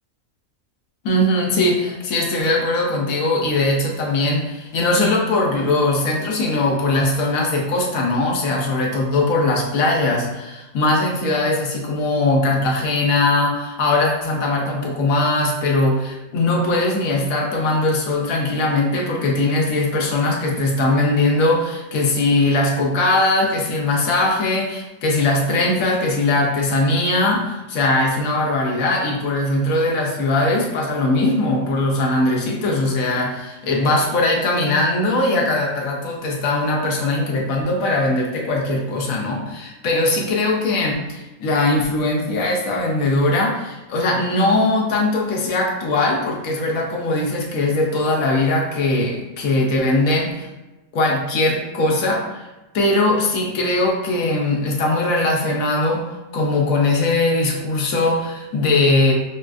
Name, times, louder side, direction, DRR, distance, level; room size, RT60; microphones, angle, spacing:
voice 1, 1.0-50.5 50.9-52.4 52.7-59.1, left 2 dB, 90° left, -1 dB, 1.2 m, -20 dB
4.9 x 2.5 x 2.3 m, 1.0 s
omnidirectional pair, 1.4 m